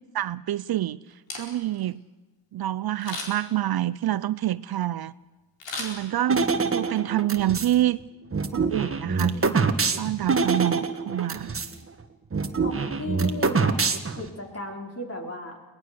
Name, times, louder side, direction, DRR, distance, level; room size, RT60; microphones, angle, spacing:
voice 1, 0.1-1.0 1.4-2.0 2.5-5.1 5.8-8.0 8.5-9.7 10.0-11.6, right 13 dB, 60° right, 18 dB, 0.5 m, -27 dB
Camera, 1.1-1.9 3.0-3.6 5.6-6.5 7.0-7.1, left 3 dB, 85° left, 4.7 m, -36 dB
sound 1, 6.3-7.7 8.3-11.7 12.0-12.1 12.3-14.3, right 4 dB, 30° right, 1.5 m, -25 dB
voice 2, 12.6-13.8 14.2-15.6, left 1 dB, 35° left, 1 dB, 4.3 m, -36 dB
22.5 x 18.5 x 6.8 m, 1.2 s
cardioid pair, 70°, 43 cm